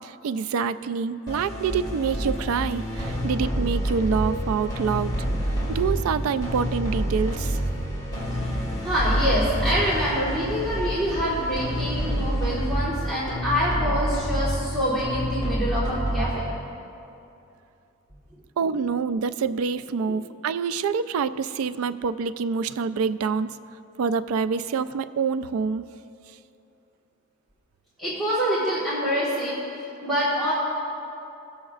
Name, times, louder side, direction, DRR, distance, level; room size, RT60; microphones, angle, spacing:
voice 1, 0.0-5.1 5.7-7.6 18.6-23.5 24.0-25.8, right 6 dB, 85° right, 13 dB, 0.3 m, -26 dB
sound 1, 1.3-16.7, equal, 20° left, 1.9 m, -28 dB
voice 2, 8.4-16.4 28.0-29.6 30.0-30.5, equal, ahead, -12 dB, 1.6 m, -26 dB
18.5 x 7.1 x 2.4 m, 2.7 s
head